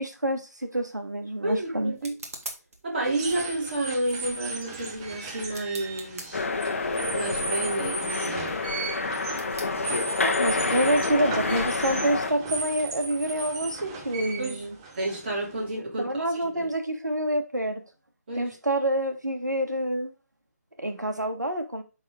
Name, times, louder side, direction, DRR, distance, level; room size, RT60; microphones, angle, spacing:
voice 1, 0.0-1.9 10.2-14.8 16.0-17.8 18.4-20.1 20.8-21.8, right 1 dB, 85° right, 1.9 m, -27 dB
sound 1, 0.7-10.5, right 2 dB, 55° right, 2.1 m, -47 dB
voice 2, 1.4-2.2 2.8-6.5 7.1-8.6 14.4-14.7 15.0-16.7 18.3-18.6, right 2 dB, 35° right, 3.3 m, -30 dB
sound 2, 3.0-15.8, right 4 dB, 15° right, 0.9 m, -36 dB
sound 3, 6.3-12.3, left 3 dB, 50° left, 1.1 m, -28 dB
9.6 x 4.2 x 3.7 m
figure-of-eight pair, 155°, 9 cm